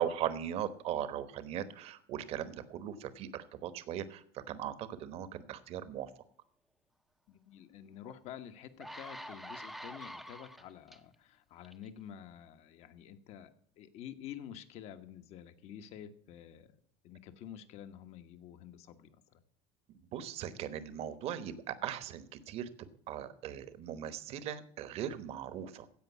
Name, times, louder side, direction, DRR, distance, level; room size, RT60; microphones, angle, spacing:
voice 1, 0.0-6.1 20.1-25.9, right 10 dB, 50° right, 14 dB, 1.1 m, -39 dB
voice 2, 7.3-13.5 13.8-16.8 17.0-19.4, left 10 dB, 55° left, 9 dB, 1.2 m, -49 dB
sound 1, 8.0-8.1 8.6-11.0 11.6-11.9, equal, ahead, 0.7 m, -46 dB
16.0 x 5.3 x 8.2 m, 0.63 s
cardioid pair, 135°, 13 cm